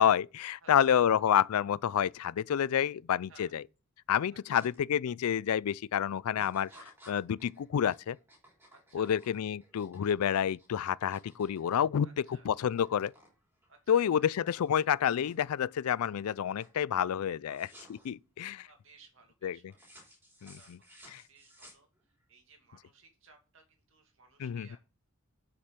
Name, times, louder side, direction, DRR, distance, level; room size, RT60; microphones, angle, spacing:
voice 1, 0.0-3.6 4.1-6.7 7.1-8.2 8.9-12.1 12.4-13.1 13.9-17.7 18.0-18.7 19.4-19.6 20.4-20.8 21.1-21.2 24.4-24.8, left 9 dB, 85° left, 0.4 m, -29 dB
voice 2, 0.6-1.2 3.3-3.6 4.3-4.7 6.5-6.9 8.7-9.2 12.0-12.5 13.7-14.3 17.5-17.7 18.7-19.9 20.5-24.8, right 4 dB, 60° right, 2.3 m, -60 dB
sound 1, 4.6-4.8 5.2-5.6 6.3-12.4 12.6-13.3 13.6-15.6 16.1-16.4 16.6-16.8 17.5-18.1 19.7-22.2, equal, 10° right, 3.4 m, -57 dB
8.0 x 6.2 x 5.9 m
head